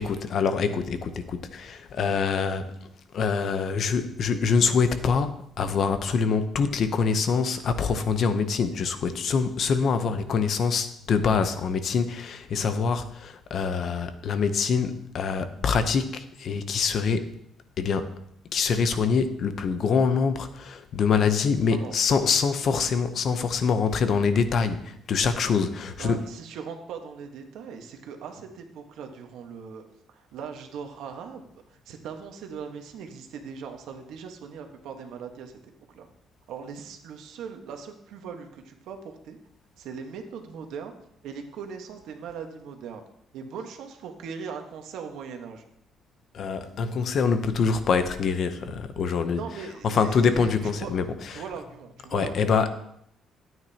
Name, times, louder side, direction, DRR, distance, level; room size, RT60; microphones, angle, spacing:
voice 1, 0.0-2.9 3.1-17.3 17.8-18.2 18.5-26.2 46.3-49.4 49.8-51.1 52.1-52.7, left 5 dB, 45° left, 10 dB, 0.7 m, -25 dB
voice 2, 26.0-36.1 36.5-39.4 39.8-40.9 41.2-43.0 43.3-45.6 49.3-50.9 51.3-52.6, right 6 dB, 75° right, 5 dB, 1.3 m, -40 dB
13.5 x 9.0 x 2.9 m, 0.73 s
cardioid pair, 170°, 0 cm